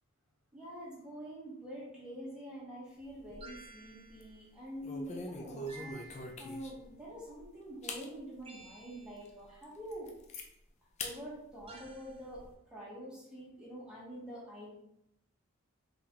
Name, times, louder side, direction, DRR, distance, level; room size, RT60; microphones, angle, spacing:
voice 1, 0.5-10.1 11.0-12.4 12.7-14.7, equal, 5° right, -7 dB, 0.9 m, -46 dB
sound 1, 3.0-3.7 4.1-4.3 4.8-6.9 7.4-7.5 7.8-8.1 8.6-8.7 9.2-9.3 9.6-10.5 11.0-11.2 11.6-12.5, left 2 dB, 30° left, 0.4 m, -43 dB
sound 2, 3.4-4.4 5.7-6.6 8.4-9.4 11.7-12.2, right 4 dB, 25° right, 0.5 m, -54 dB
3.8 x 3.6 x 2.8 m, 0.81 s
head